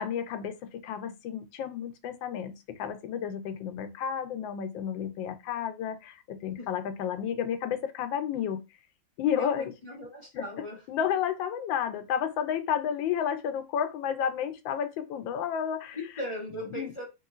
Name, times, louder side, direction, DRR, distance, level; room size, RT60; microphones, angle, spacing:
voice 1, 0.0-8.6 9.2-9.7 10.3-10.5 10.9-16.0 16.5-16.9, left 8 dB, 85° left, 1.3 m, -31 dB
voice 2, 9.4-10.8 15.9-17.0, equal, 45° left, 0.4 m, -38 dB
3.2 x 3.0 x 2.4 m
omnidirectional pair, 2.0 m